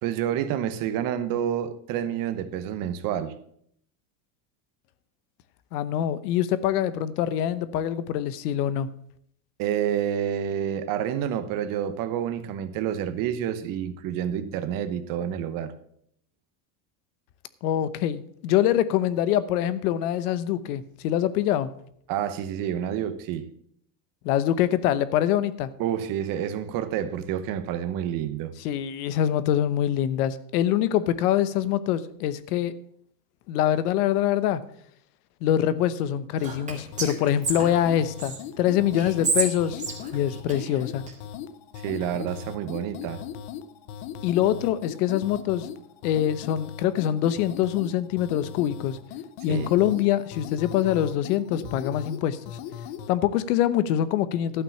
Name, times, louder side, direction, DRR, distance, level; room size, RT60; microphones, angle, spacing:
voice 1, 0.0-3.3 9.6-15.7 22.1-23.5 25.8-28.5 41.8-43.2 49.5-49.7, right 10 dB, 45° right, 1.0 m, -28 dB
voice 2, 5.7-8.9 17.6-21.8 24.2-25.7 28.6-32.7 33.5-34.6 35.4-39.8 40.1-41.1 44.2-45.7 46.0-49.0 49.4-52.4 53.1-54.6, left 11 dB, 85° left, 1.0 m, -24 dB
Whispering, 36.4-38.4 39.0-41.1, right 4 dB, 15° right, 2.3 m, -31 dB
sound 1, 36.9-53.1, left 8 dB, 55° left, 0.8 m, -39 dB
12.0 x 6.0 x 7.0 m
cardioid pair, 155°, 45 cm